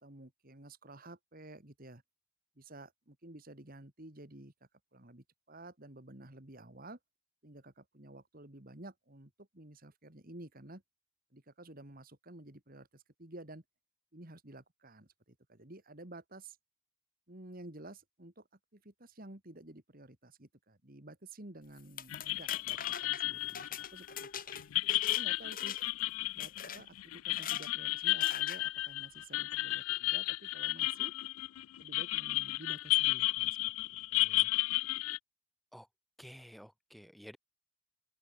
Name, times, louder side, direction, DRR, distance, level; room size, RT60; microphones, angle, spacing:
voice 1, 0.0-2.0 2.6-4.5 4.9-7.0 7.4-10.8 11.3-13.6 14.1-16.6 17.3-18.5 18.7-24.5 25.1-25.8 26.4-31.1 31.8-33.6 34.1-34.5, right 1 dB, 40° right, 2.3 m, -52 dB
sound 1, 21.8-25.2 25.5-26.0 26.4-26.8 27.3-27.7 28.2-28.6, left 8 dB, 40° left, 2.1 m, -43 dB
Teks Sharp Twangy Guitar Trem Phase, 22.1-35.2, left 19 dB, 70° left, 0.3 m, -33 dB
voice 2, 36.2-37.4, equal, ahead, 3.0 m, -51 dB
open air
head